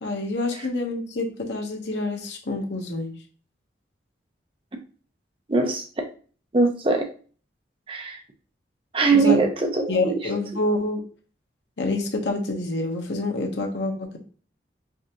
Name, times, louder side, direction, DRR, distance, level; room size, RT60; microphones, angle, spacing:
voice 1, 0.0-3.1 9.1-9.4 9.9-11.0 11.8-14.2, left 2 dB, 75° left, 0.9 m, -27 dB
voice 2, 5.5-6.0 6.5-7.1 7.9-8.2 8.9-10.2, right 3 dB, 30° right, 0.6 m, -22 dB
5.0 x 2.4 x 2.9 m
head